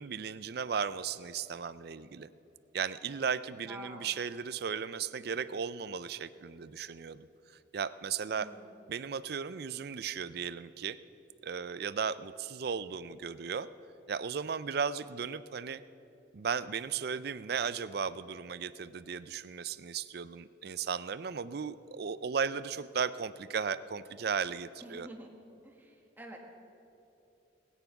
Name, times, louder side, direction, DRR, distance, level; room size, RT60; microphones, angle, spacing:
voice 1, 0.0-2.3 2.7-7.3 7.7-8.5 8.9-11.0 11.4-13.7 14.1-15.8 16.3-25.1, right 6 dB, 55° right, 15 dB, 0.4 m, -35 dB
voice 2, 3.7-4.1 8.4-8.7 24.8-25.4 25.6-26.4, equal, 10° right, 0 dB, 1.6 m, -48 dB
20.5 x 9.2 x 5.9 m, 3.0 s
head